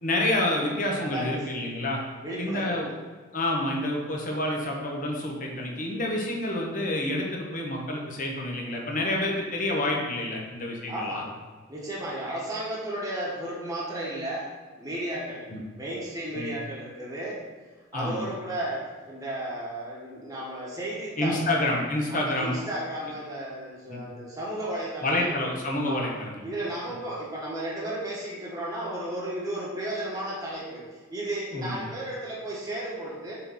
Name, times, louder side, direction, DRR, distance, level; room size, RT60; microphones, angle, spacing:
voice 1, 0.0-2.0 2.4-2.9 3.3-11.2 15.5-15.6 16.3-16.5 17.9-18.3 21.2-22.6 23.9-24.0 25.0-26.4 31.5-31.8, left 1 dB, 40° left, -1 dB, 1.1 m, -28 dB
voice 2, 1.0-1.6 2.1-2.9 10.9-11.3 11.7-17.4 17.9-21.4 22.1-25.3 25.9-26.1 26.4-33.3, right 1 dB, 15° right, -6 dB, 1.3 m, -34 dB
6.6 x 3.9 x 4.2 m, 1.4 s
head